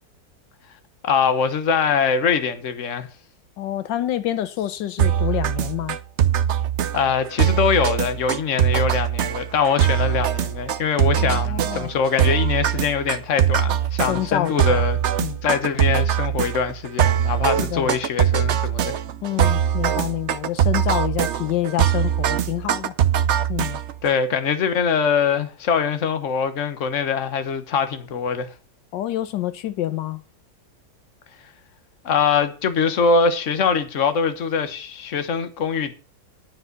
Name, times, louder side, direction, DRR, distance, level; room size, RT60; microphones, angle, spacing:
voice 1, 1.0-3.1 6.9-15.0 15.4-19.0 24.0-28.5 32.0-35.9, left 6 dB, 45° left, 1.4 m, -23 dB
voice 2, 3.6-6.0 11.2-11.9 14.1-14.8 15.2-15.4 17.6-17.9 19.2-23.0 23.5-23.8 28.9-30.2, left 13 dB, 80° left, 1.4 m, -27 dB
sound 1, 5.0-24.1, right 10 dB, 60° right, 0.7 m, -22 dB
9.9 x 9.5 x 5.3 m
omnidirectional pair, 1.9 m